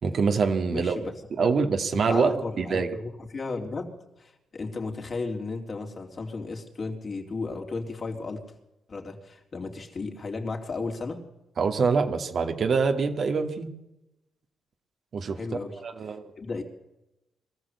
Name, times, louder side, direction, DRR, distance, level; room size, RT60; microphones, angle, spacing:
voice 1, 0.0-1.0 1.4-2.9 11.6-13.7 15.1-15.4 15.8-16.2, right 5 dB, 60° right, 6 dB, 2.1 m, -25 dB
voice 2, 0.7-1.5 1.9-8.5 8.9-11.2 15.3-15.8 16.4-16.6, left 3 dB, 45° left, 3 dB, 3.7 m, -34 dB
22.5 x 14.0 x 8.3 m, 0.94 s
cardioid pair, 70°, 0 cm